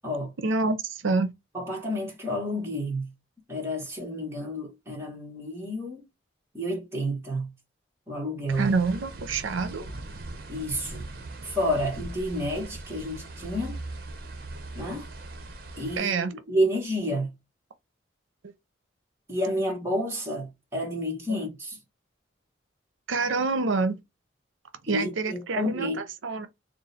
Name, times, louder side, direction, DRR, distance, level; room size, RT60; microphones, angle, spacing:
voice 1, 0.4-1.3 8.5-9.9 16.0-16.3 21.3-21.4 23.1-24.0 24.8-26.5, right 4 dB, 85° right, 0.6 m, -27 dB
voice 2, 1.5-3.1 3.5-6.1 6.5-7.5 8.1-8.7 10.5-11.0 11.4-13.8 14.7-15.0 15.8-17.3 19.3-21.8 24.9-26.0, equal, 15° right, 1.5 m, -30 dB
sound 1, 8.5-16.0, right 2 dB, 50° right, 0.8 m, -40 dB
3.8 x 2.3 x 4.1 m
head